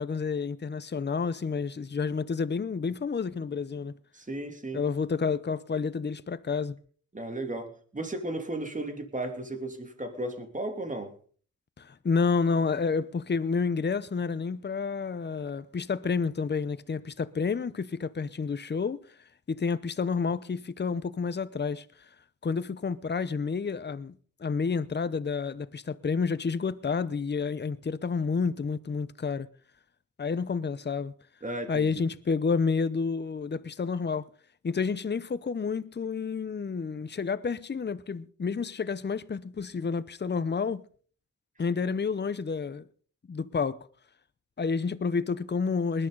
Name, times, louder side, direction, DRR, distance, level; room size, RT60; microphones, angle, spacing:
voice 1, 0.0-3.9 4.7-6.8 11.8-19.0 19.5-21.9 22.4-29.5 30.2-31.1 31.7-34.3 34.6-40.8 41.6-42.8 43.3-43.9 44.6-46.1, left 5 dB, 35° left, 0.8 m, -30 dB
voice 2, 4.1-4.8 7.1-11.1 31.4-32.0, right 1 dB, 25° right, 3.0 m, -35 dB
20.0 x 11.0 x 4.0 m
cardioid pair, 70°, 30 cm